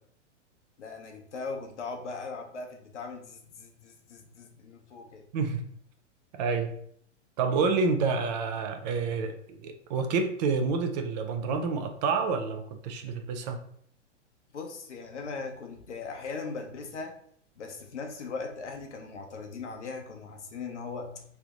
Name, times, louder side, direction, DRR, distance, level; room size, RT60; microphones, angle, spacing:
voice 1, 0.8-5.2 14.5-17.2 17.6-21.2, left 4 dB, 70° left, 3 dB, 1.0 m, -39 dB
voice 2, 5.3-5.7 6.3-6.7 7.4-13.6, right 4 dB, 35° right, 6 dB, 0.6 m, -28 dB
3.3 x 2.8 x 3.7 m, 0.64 s
figure-of-eight pair, 110°, 37 cm